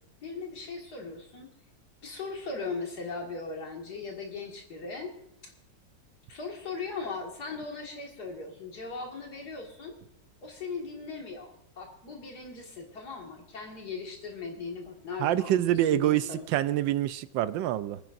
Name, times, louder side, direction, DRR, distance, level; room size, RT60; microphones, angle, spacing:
voice 1, 0.2-1.5 2.0-5.1 5.4-5.5 6.3-10.0 10.4-16.4, left 4 dB, 60° left, 2.6 m, -38 dB
voice 2, 15.2-18.0, right 13 dB, 85° right, 1.3 m, -26 dB
25.0 x 10.0 x 2.6 m
omnidirectional pair, 2.0 m